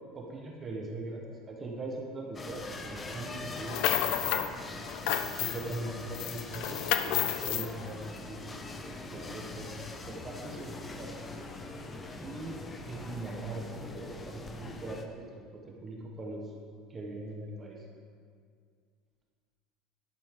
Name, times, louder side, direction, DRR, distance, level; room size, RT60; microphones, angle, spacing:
voice 1, 0.1-1.2 1.5-3.9 5.2-8.6 9.1-11.1 12.2-12.6 12.9-13.6 13.9-16.5 16.9-17.8, right 2 dB, 20° right, -1 dB, 1.1 m, -41 dB
sound 1, 2.3-15.0, left 2 dB, 15° left, 0.7 m, -42 dB
sound 2, 3.5-4.5 4.9-5.8 6.1-7.7, left 11 dB, 55° left, 0.5 m, -30 dB
11.5 x 11.0 x 3.7 m, 2.1 s
cardioid pair, 170°, 0 cm